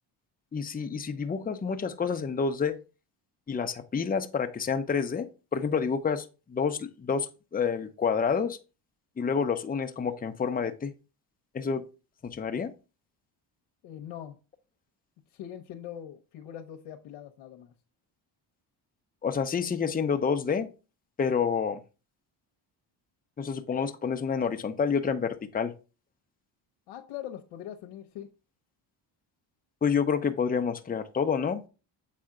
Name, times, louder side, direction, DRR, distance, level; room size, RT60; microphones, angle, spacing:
voice 1, 0.5-2.8 3.5-8.6 9.2-10.9 11.5-11.8 12.2-12.7 19.2-20.7 21.2-21.8 23.4-25.7 29.8-31.7, left 6 dB, 20° left, 0.7 m, -28 dB
voice 2, 13.8-14.4 15.3-17.7 26.9-28.3, left 10 dB, 90° left, 0.9 m, -42 dB
7.8 x 4.2 x 3.7 m
cardioid pair, 85°, 48 cm